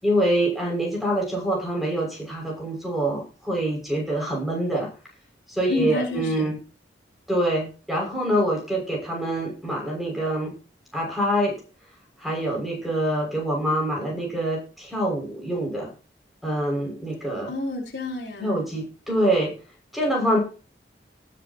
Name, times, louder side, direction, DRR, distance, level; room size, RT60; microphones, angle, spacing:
voice 1, 0.0-4.9 5.5-6.6 7.3-10.5 10.9-11.6 12.2-15.9 16.4-17.5 18.4-19.5 19.9-20.4, right 1 dB, ahead, -1 dB, 6.4 m, -25 dB
voice 2, 5.7-6.5 17.5-18.6, left 2 dB, 70° left, -2 dB, 4.5 m, -29 dB
19.5 x 8.0 x 3.0 m, 0.35 s
head